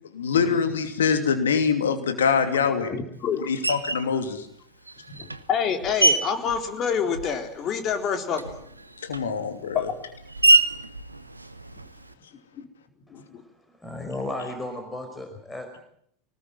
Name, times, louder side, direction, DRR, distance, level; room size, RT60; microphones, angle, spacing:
voice 1, 0.1-2.9 3.5-4.4 9.1-9.9, left 6 dB, 70° left, 7 dB, 2.8 m, -24 dB
voice 2, 2.9-3.5 5.1-8.4 9.7-9.8 12.5-12.7 13.1-13.2, left 7 dB, 40° left, 6 dB, 4.0 m, -27 dB
Screech, 3.6-4.1 4.9-7.6 7.8-12.1, right 2 dB, 90° right, 1.0 m, -26 dB
voice 3, 13.7-15.7, left 2 dB, 10° left, 5 dB, 5.0 m, -34 dB
25.0 x 20.0 x 9.3 m, 0.69 s
figure-of-eight pair, 80°, 0 cm